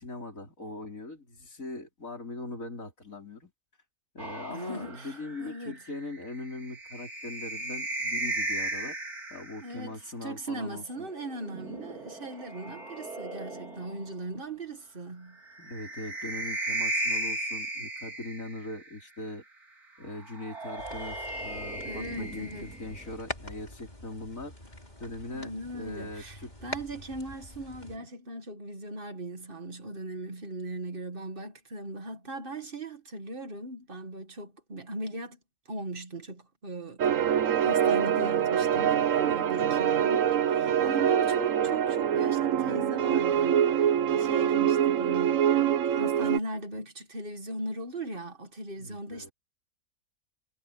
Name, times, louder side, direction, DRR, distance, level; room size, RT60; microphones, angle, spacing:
voice 1, 0.0-3.5 4.1-9.0 9.3-11.1 15.6-19.4 20.0-24.5 25.0-26.5 27.8-28.0 48.8-49.3, left 2 dB, 60° left, 5.6 m, -41 dB
sound 1, 4.2-9.7 11.1-14.1 15.4-18.9 20.2-23.1, right 1 dB, 85° right, 4.2 m, -36 dB
voice 2, 4.5-5.8 9.6-15.4 21.8-22.7 25.3-35.4 35.7-37.1 37.6-49.3, right 2 dB, 35° right, 2.2 m, -39 dB
sound 2, 20.8-28.0, left 1 dB, 30° left, 4.0 m, -44 dB
sound 3, 37.0-46.4, right 9 dB, 65° right, 1.2 m, -25 dB
omnidirectional pair, 1.5 m